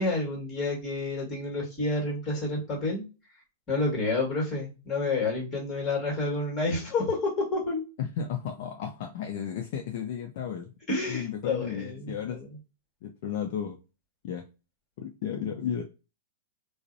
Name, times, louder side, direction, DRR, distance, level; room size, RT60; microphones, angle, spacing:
voice 1, 0.0-3.0 3.7-7.8 10.9-12.5, left 2 dB, 25° left, 0 dB, 1.4 m, -29 dB
voice 2, 8.0-10.7 11.1-12.4 13.0-13.8 14.2-14.5 15.0-15.8, left 8 dB, 60° left, 3 dB, 0.4 m, -33 dB
2.5 x 2.0 x 2.5 m, 0.30 s
hypercardioid pair, 140°, 0 cm